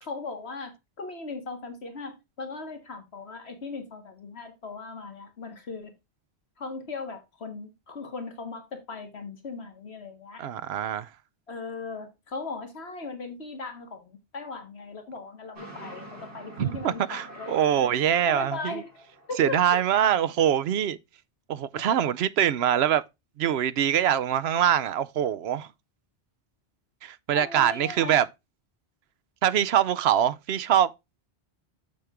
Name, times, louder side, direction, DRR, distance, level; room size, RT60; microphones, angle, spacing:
voice 1, 0.0-5.9 6.6-10.4 11.5-18.9 19.3-19.6 27.3-28.2, left 3 dB, 75° left, 1.8 m, -38 dB
voice 2, 10.4-11.1 16.6-18.7 19.4-21.0 21.5-23.0 23.4-25.7 27.0-28.3 29.4-30.9, right 10 dB, 75° right, 0.8 m, -24 dB
sound 1, 15.6-19.8, right 1 dB, 55° right, 4.1 m, -46 dB
7.1 x 6.5 x 3.6 m
omnidirectional pair, 1.1 m